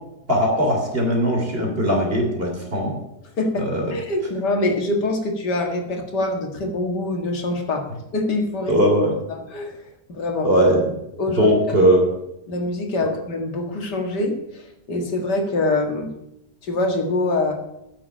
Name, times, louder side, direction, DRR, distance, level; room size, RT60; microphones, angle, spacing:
voice 1, 0.3-2.9 3.6-3.9 8.7-9.1 10.4-10.9 11.4-12.1 13.0-13.1, equal, 35° right, 0 dB, 3.5 m, -19 dB
voice 2, 3.4-7.8 8.1-8.8 9.3-9.8 10.1-10.5 11.2-11.9 12.5-16.1 16.6-17.6, left 2 dB, 90° left, 3 dB, 2.5 m, -24 dB
10.0 x 7.1 x 8.9 m, 0.85 s
omnidirectional pair, 1.7 m